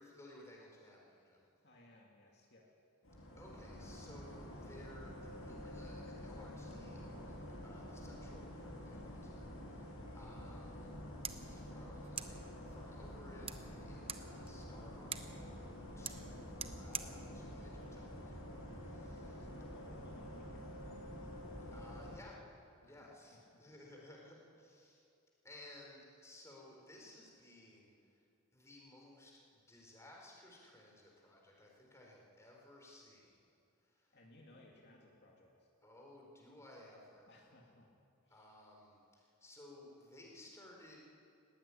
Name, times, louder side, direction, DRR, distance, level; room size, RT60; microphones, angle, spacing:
voice 1, 0.0-1.4 3.4-15.7 16.0-19.4 21.7-22.4 22.9-25.0 25.4-28.2 28.5-33.6 33.8-34.2 35.8-37.3 38.3-41.0, left 1 dB, 15° left, -1 dB, 4.3 m, -58 dB
voice 2, 1.6-2.7 10.5-10.6 19.4-21.0 22.8-23.6 34.1-35.7 37.3-37.9 38.2-38.6, left 1 dB, 50° left, -2 dB, 2.4 m, -63 dB
sound 1, 3.0-22.2, equal, 65° left, 6.5 m, -48 dB
sound 2, 11.2-18.8, right 8 dB, 25° right, 0.8 m, -50 dB
19.0 x 16.0 x 9.9 m, 2.5 s
head